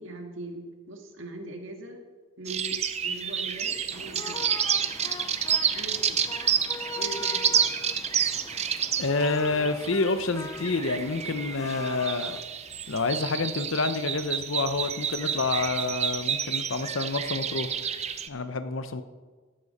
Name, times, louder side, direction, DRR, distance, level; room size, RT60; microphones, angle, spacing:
voice 1, 0.0-2.0 2.4-4.7 5.7-6.3 7.0-7.6, right 1 dB, 60° right, 3 dB, 1.8 m, -41 dB
sound 1, 2.5-18.3, right 8 dB, 30° right, 0.6 m, -29 dB
sound 2, 3.9-12.4, left 3 dB, 15° left, 0.4 m, -41 dB
voice 2, 9.0-12.4 12.9-17.8 18.3-19.0, left 3 dB, 65° left, 11 dB, 0.8 m, -28 dB
13.0 x 11.5 x 4.2 m, 1.4 s
head